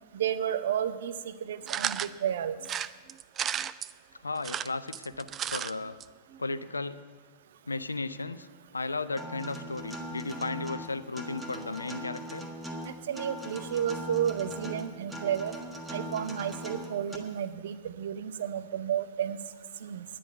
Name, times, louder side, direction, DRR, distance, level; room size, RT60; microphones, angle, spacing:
voice 1, 0.1-2.5 13.1-15.5 15.9-19.4 19.8-20.0, right 9 dB, 60° right, 11 dB, 0.6 m, -32 dB
sound 1, 1.7-2.1 2.6-3.9 4.4-5.7 6.0-6.1 6.3-6.4, right 9 dB, 25° right, 0.3 m, -33 dB
voice 2, 4.2-6.0 6.4-7.0 7.7-8.5 8.7-12.5, left 3 dB, 80° left, 14 dB, 0.4 m, -35 dB
Acoustic guitar, 9.2-17.2, equal, 10° right, 1.5 m, -40 dB
10.5 x 9.9 x 7.8 m, 1.5 s
figure-of-eight pair, 90°, 0 cm